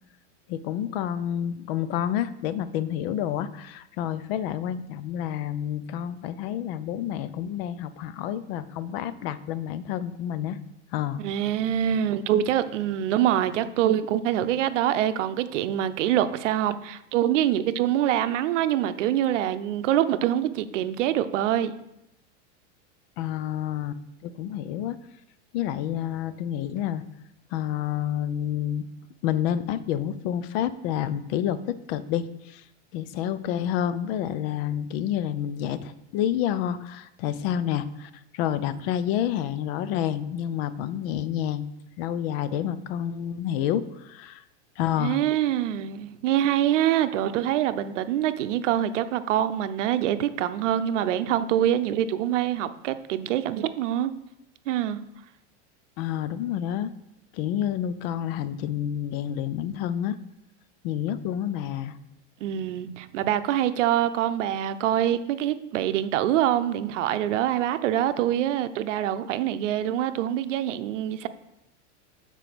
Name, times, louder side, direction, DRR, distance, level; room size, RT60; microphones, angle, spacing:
voice 1, 0.5-10.6 10.9-11.2 23.2-25.0 25.5-27.0 27.5-28.9 29.2-32.6 32.9-41.7 42.0-44.4 44.8-45.2 56.0-56.9 57.3-60.2 60.8-62.0, left 10 dB, 55° left, 14 dB, 0.6 m, -29 dB
voice 2, 11.2-21.7 45.0-54.1 54.7-55.0 62.4-71.3, right 11 dB, 85° right, 12 dB, 0.7 m, -25 dB
7.0 x 4.5 x 6.0 m, 0.85 s
supercardioid pair, 145°, 36 cm